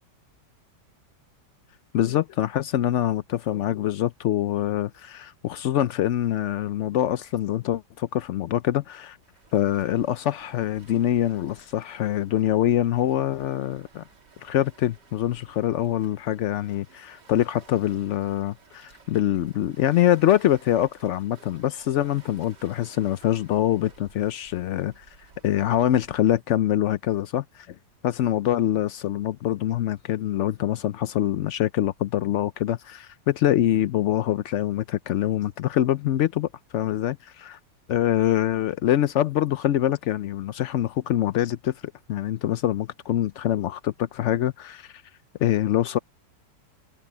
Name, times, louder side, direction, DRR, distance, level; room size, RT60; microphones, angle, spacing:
voice 1, 1.9-9.2 9.5-14.0 14.4-25.0 25.4-27.8 28.0-37.6 37.9-45.0 45.4-46.0, left 12 dB, 85° left, 0.6 m, -24 dB
Waves surf, 9.2-26.4, right 5 dB, 75° right, 3.1 m, -55 dB
omnidirectional pair, 1.9 m